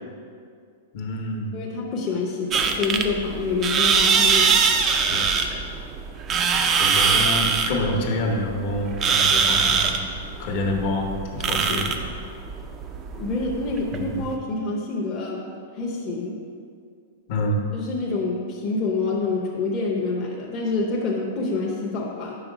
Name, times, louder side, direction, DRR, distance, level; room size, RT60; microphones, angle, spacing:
voice 1, 0.9-1.6 5.1-5.7 6.8-10.0 10.4-11.9 13.9-14.2 17.3-17.6, left 1 dB, 55° left, 1 dB, 0.9 m, -27 dB
voice 2, 1.5-4.6 13.1-15.4 15.7-16.4 17.7-22.4, left 3 dB, 30° left, -3 dB, 0.7 m, -27 dB
sound 1, 2.5-14.3, right 5 dB, 25° right, 0.4 m, -22 dB
5.0 x 4.6 x 5.0 m, 2.2 s
hypercardioid pair, 135°, 0 cm